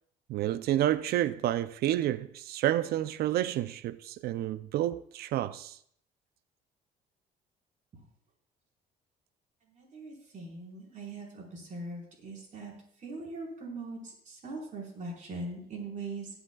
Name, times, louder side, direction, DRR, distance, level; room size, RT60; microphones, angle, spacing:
voice 1, 0.3-5.8, right 13 dB, 70° right, 0.5 m, -29 dB
voice 2, 9.7-12.7 13.0-16.3, right 2 dB, 45° right, 4.6 m, -41 dB
20.5 x 8.0 x 2.3 m
cardioid pair, 110°, 17 cm